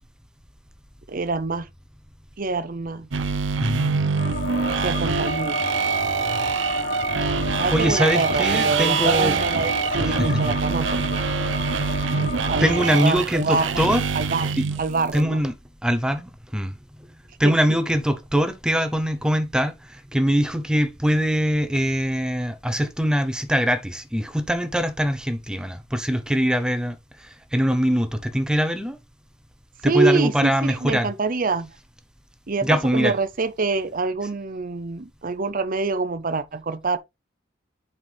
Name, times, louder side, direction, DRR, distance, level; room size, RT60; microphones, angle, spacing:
voice 1, 1.1-1.7 2.4-3.1 4.7-5.6 7.6-11.2 12.2-12.7 12.9-13.8 14.1-14.5 14.8-15.4 17.4-17.5 29.8-31.7 32.5-37.0, right 3 dB, 45° right, 0.7 m, -25 dB
sound 1, 3.1-15.2, right 5 dB, 80° right, 0.8 m, -25 dB
voice 2, 3.6-4.0 7.7-9.3 10.0-10.4 12.2-14.0 14.6-14.7 15.1-15.5 15.8-16.7 17.4-29.0 29.8-31.1 32.6-33.1, equal, 5° right, 0.9 m, -23 dB
sound 2, 4.2-13.1, left 5 dB, 45° left, 0.5 m, -32 dB
7.9 x 5.7 x 3.5 m
head